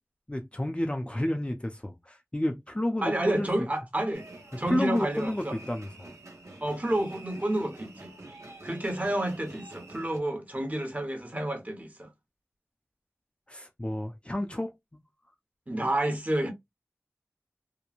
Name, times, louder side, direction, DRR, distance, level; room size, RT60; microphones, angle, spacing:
voice 1, 0.3-3.7 4.7-6.1 13.5-14.7, left 1 dB, 20° left, 0.5 m, -31 dB
voice 2, 3.0-4.3 4.6-5.6 6.6-8.1 8.6-12.1 15.7-16.5, right 1 dB, 30° right, 1.0 m, -30 dB
sound 1, 4.1-10.2, right 2 dB, 80° right, 0.9 m, -47 dB
3.0 x 2.1 x 2.4 m
wide cardioid pair, 45°, 5 cm